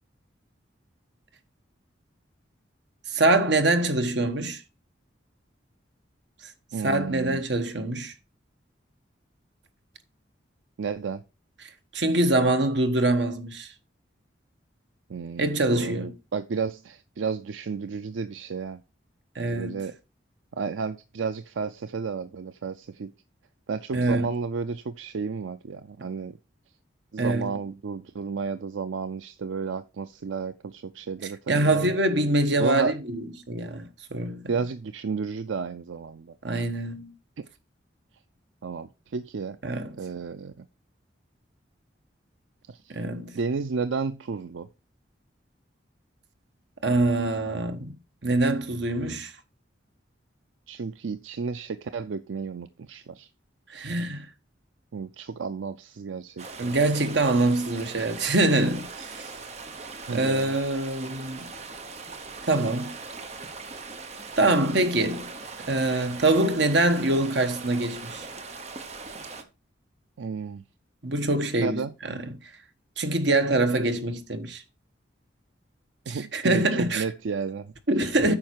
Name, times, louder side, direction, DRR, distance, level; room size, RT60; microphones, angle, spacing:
voice 1, 3.1-4.6 6.4-6.5 6.8-8.1 11.9-13.7 15.4-16.1 19.3-19.8 23.9-24.3 27.2-27.6 31.5-34.4 36.4-37.1 39.6-40.0 42.9-43.4 46.8-48.0 48.2-49.3 53.7-54.3 56.6-59.3 60.1-61.5 62.5-63.0 64.4-65.3 65.7-68.3 71.0-72.3 73.0-74.6 76.1-77.0 77.9-78.3, right 2 dB, 70° right, 1.3 m, -24 dB
voice 2, 6.7-7.4 10.8-11.2 15.1-18.8 19.5-19.9 20.5-23.1 23.7-26.4 27.1-31.4 31.6-31.9 32.6-32.9 34.5-36.3 38.6-39.6 40.0-40.7 42.7-43.0 43.3-44.7 50.7-53.3 54.9-56.7 60.1-60.6 70.2-70.6 71.6-71.9 76.1-77.7 78.3-78.4, right 5 dB, 90° right, 0.5 m, -32 dB
sound 1, 56.4-69.4, right 4 dB, 35° right, 1.0 m, -40 dB
9.0 x 5.7 x 4.6 m
head